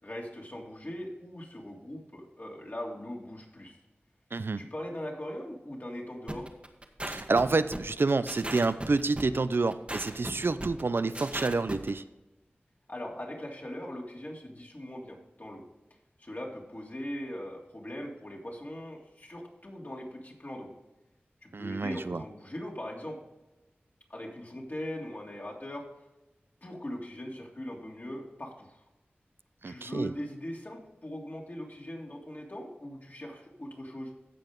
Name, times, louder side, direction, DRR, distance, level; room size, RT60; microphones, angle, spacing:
voice 1, 0.0-3.8 4.6-6.5 12.9-15.6 16.2-20.7 21.4-23.2 24.1-25.9 26.6-28.8 29.6-34.1, left 1 dB, 45° left, -2 dB, 3.0 m, -40 dB
voice 2, 4.3-4.6 7.0-12.0 21.5-22.2 29.6-30.1, right 3 dB, 65° right, 13 dB, 0.5 m, -28 dB
sound 1, 6.3-11.9, right 1 dB, 30° right, 1.4 m, -37 dB
16.0 x 5.6 x 3.8 m, 1.0 s
cardioid pair, 40°, 4 cm